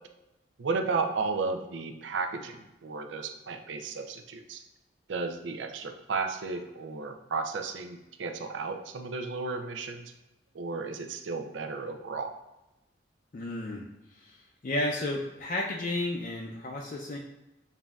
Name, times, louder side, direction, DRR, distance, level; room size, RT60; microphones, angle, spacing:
voice 1, 0.6-4.6 5.1-10.1 10.5-12.3, right 4 dB, 85° right, 6 dB, 0.5 m, -33 dB
voice 2, 13.3-17.2, left 1 dB, 45° left, -1 dB, 0.4 m, -33 dB
7.2 x 2.7 x 2.3 m, 0.97 s
head